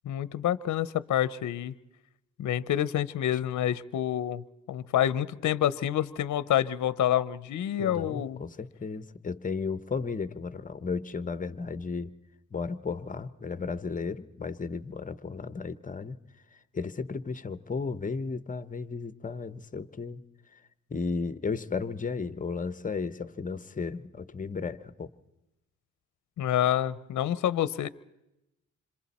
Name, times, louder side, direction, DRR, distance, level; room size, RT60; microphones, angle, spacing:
voice 1, 0.0-1.7 2.4-8.4 26.4-27.9, left 11 dB, 70° left, 17 dB, 0.6 m, -28 dB
voice 2, 7.8-12.1 12.5-16.2 16.7-20.2 20.9-25.1, left 4 dB, 25° left, 14 dB, 0.9 m, -34 dB
26.5 x 26.0 x 4.2 m, 0.91 s
cardioid pair, 95°, 31 cm